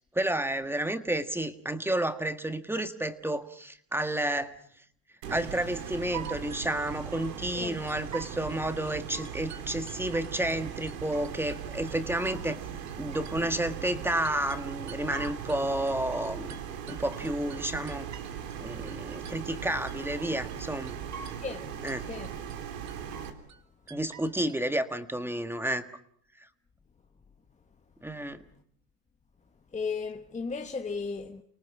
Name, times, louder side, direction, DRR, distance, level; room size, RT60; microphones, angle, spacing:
voice 1, 0.0-4.6 5.3-12.6 13.0-16.6 16.9-18.1 18.6-20.9 21.8-22.1 23.9-25.8 28.0-28.4, right 1 dB, 5° right, 1.6 m, -31 dB
sound 1, 5.2-23.3, right 8 dB, 90° right, 3.7 m, -39 dB
sound 2, 5.9-7.6 7.9-8.6 8.9-10.6 10.9-11.6 11.9-15.6 15.9-18.6 18.9-19.6 19.9-20.6 20.9-21.6 21.9-22.6 22.9-23.6 23.9-24.6, right 8 dB, 35° right, 2.0 m, -46 dB
voice 2, 29.7-31.4, left 5 dB, 15° left, 1.2 m, -35 dB
30.0 x 19.0 x 6.1 m
supercardioid pair, 115°, 48 cm